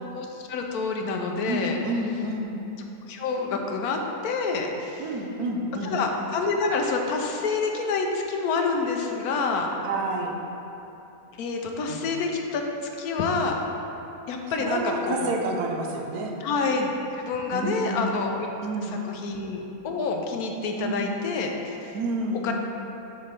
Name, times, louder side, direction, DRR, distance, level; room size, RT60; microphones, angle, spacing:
voice 1, 0.1-1.8 3.1-5.0 5.8-9.7 11.4-12.6 13.0-13.6 14.3-15.4 16.4-16.9 17.2-18.5 19.0-21.9 22.4-22.5, left 4 dB, 85° left, 2 dB, 1.2 m, -27 dB
voice 2, 1.5-2.5 5.0-5.9 9.8-10.3 11.9-12.0 14.6-16.3 17.5-18.1 18.6-19.3 20.8-21.0 21.9-22.5, right 2 dB, 85° right, 0 dB, 1.3 m, -29 dB
7.4 x 3.2 x 5.8 m, 3.0 s
omnidirectional pair, 1.6 m